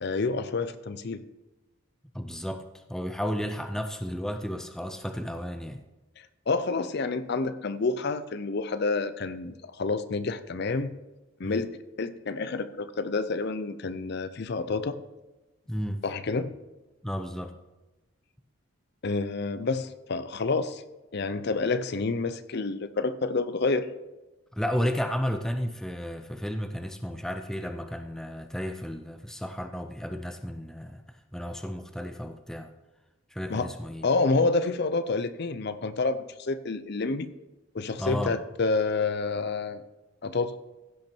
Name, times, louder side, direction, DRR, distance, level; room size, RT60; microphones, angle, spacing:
voice 1, 0.0-1.2 6.5-10.9 11.4-11.7 12.0-15.0 16.0-16.6 19.0-20.8 21.1-23.9 33.5-33.7 34.0-37.3 37.7-39.8 40.2-40.6, left 3 dB, 50° left, 13 dB, 0.5 m, -28 dB
voice 2, 2.1-5.8 11.4-11.6 15.7-16.0 17.0-17.6 24.5-31.0 31.3-32.7 33.3-34.1 38.0-38.4, equal, ahead, 6 dB, 0.5 m, -33 dB
16.0 x 5.9 x 4.4 m, 1.1 s
head